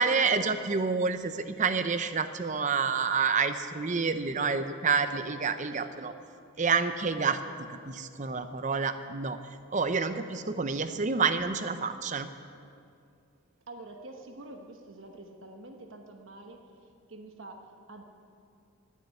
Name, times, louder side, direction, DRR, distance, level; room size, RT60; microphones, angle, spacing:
voice 1, 0.0-6.1 6.6-9.4 9.7-12.3, right 5 dB, 35° right, 10 dB, 0.6 m, -28 dB
voice 2, 4.2-4.7 5.1-5.4 5.7-6.2 13.7-16.6 17.1-18.0, right 2 dB, 60° right, 3 dB, 1.1 m, -47 dB
15.0 x 7.5 x 9.6 m, 2.4 s
head